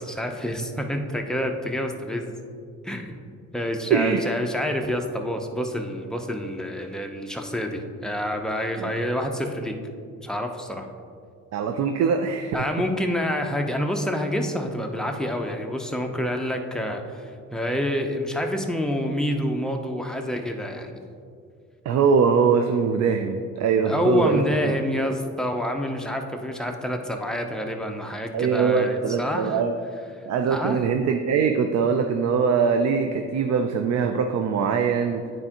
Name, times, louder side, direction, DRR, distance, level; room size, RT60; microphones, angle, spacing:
voice 1, 0.0-2.3 2.8-3.2 3.5-9.8 10.2-10.9 12.5-20.9 23.8-29.6 30.5-30.8, left 1 dB, ahead, 3 dB, 0.6 m, -27 dB
voice 2, 3.9-4.2 8.8-8.9 11.5-12.6 21.9-24.5 28.3-29.7 30.3-35.2, right 6 dB, 60° right, 6 dB, 0.5 m, -22 dB
9.5 x 4.4 x 2.9 m, 2.3 s
cardioid pair, 90°, 30 cm